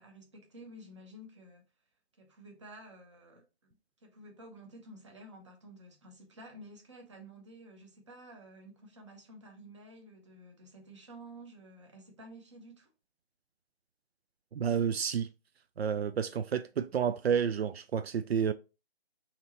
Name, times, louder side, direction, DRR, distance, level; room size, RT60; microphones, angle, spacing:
voice 1, 0.0-1.6 2.2-12.9, right 1 dB, 30° right, 0.9 m, -52 dB
voice 2, 14.5-15.3 15.8-18.5, right 7 dB, 75° right, 0.4 m, -30 dB
5.7 x 2.9 x 2.9 m
hypercardioid pair, 165°, 31 cm